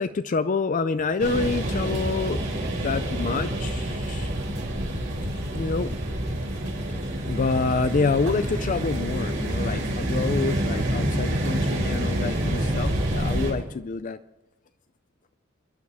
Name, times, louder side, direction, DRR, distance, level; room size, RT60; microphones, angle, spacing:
voice 1, 0.0-2.4 2.7-4.3 5.5-6.0 7.3-14.2, left 4 dB, 40° left, 11 dB, 0.4 m, -27 dB
sound 1, 1.2-13.5, right 1 dB, 65° right, 4.8 m, -27 dB
29.0 x 11.0 x 3.5 m, 1.0 s
head